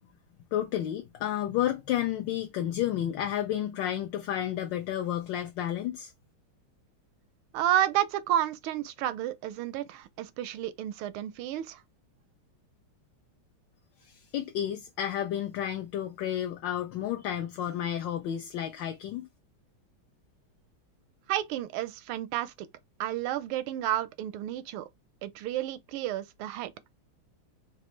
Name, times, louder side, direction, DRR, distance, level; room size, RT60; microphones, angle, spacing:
voice 1, 0.5-6.1 14.0-19.3, left 11 dB, 75° left, 1.1 m, -31 dB
voice 2, 7.5-11.8 21.3-22.7 23.0-24.9 25.2-26.7, right 12 dB, 85° right, 1.4 m, -31 dB
5.3 x 2.4 x 3.1 m
omnidirectional pair, 2.3 m